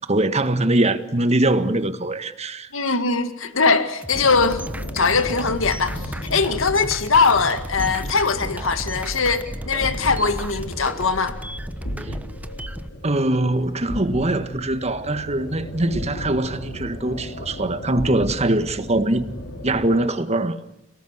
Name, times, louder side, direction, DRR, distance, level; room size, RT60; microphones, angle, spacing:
voice 1, 0.1-2.7 12.0-12.1 13.0-20.5, right 1 dB, 35° right, 1.7 m, -22 dB
voice 2, 2.7-4.6 4.9-11.4, left 4 dB, 80° left, 1.9 m, -21 dB
sound 1, 4.0-12.9, right 1 dB, 10° right, 1.1 m, -34 dB
sound 2, 4.2-19.9, left 1 dB, 65° left, 5.3 m, -35 dB
30.0 x 18.5 x 8.2 m
head